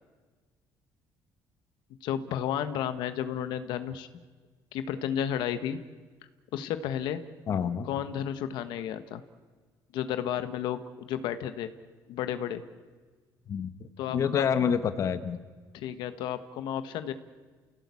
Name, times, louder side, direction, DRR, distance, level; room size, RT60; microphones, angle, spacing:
voice 1, 2.0-4.1 4.7-5.8 6.5-7.2 7.8-9.2 9.9-11.7 12.1-12.6 14.0-14.5 15.7-17.1, left 10 dB, 85° left, 10 dB, 1.4 m, -32 dB
voice 2, 7.5-7.9 13.5-15.4, left 7 dB, 45° left, 10 dB, 1.2 m, -28 dB
30.0 x 16.5 x 8.5 m, 1.5 s
cardioid pair, 150°, 7 cm